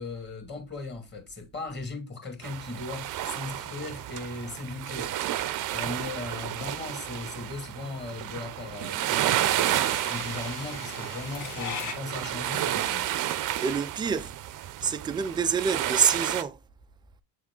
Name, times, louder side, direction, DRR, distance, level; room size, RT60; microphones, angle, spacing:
voice 1, 0.0-5.1 5.7-13.1, left 3 dB, 20° left, 2.2 m, -38 dB
sound 1, 2.4-16.4, right 13 dB, 40° right, 0.7 m, -31 dB
sound 2, 5.7-11.9, left 6 dB, 40° left, 1.5 m, -40 dB
voice 2, 13.6-14.3 14.8-16.5, right 6 dB, 10° right, 0.3 m, -26 dB
7.3 x 3.7 x 3.7 m
supercardioid pair, 95°, 46 cm